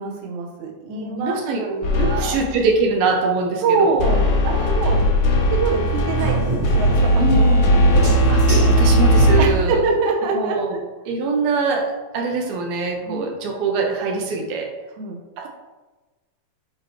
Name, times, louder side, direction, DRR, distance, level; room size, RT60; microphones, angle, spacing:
voice 1, 0.0-2.4 3.6-6.4 6.7-8.2 9.4-10.8 13.1-13.2 15.0-15.5, right 4 dB, 65° right, 1 dB, 2.0 m, -25 dB
voice 2, 0.9-1.6 2.0-4.0 7.2-7.7 8.3-9.8 10.3-10.7 11.1-14.7 15.4-15.5, right 4 dB, 85° right, 1 dB, 2.9 m, -23 dB
sound 1, 1.8-2.6 4.0-9.5, equal, 65° left, 2.1 m, -17 dB
sound 2, 5.8-9.9, right 1 dB, 45° right, 0.8 m, -28 dB
9.4 x 4.7 x 3.1 m, 1.2 s
omnidirectional pair, 4.3 m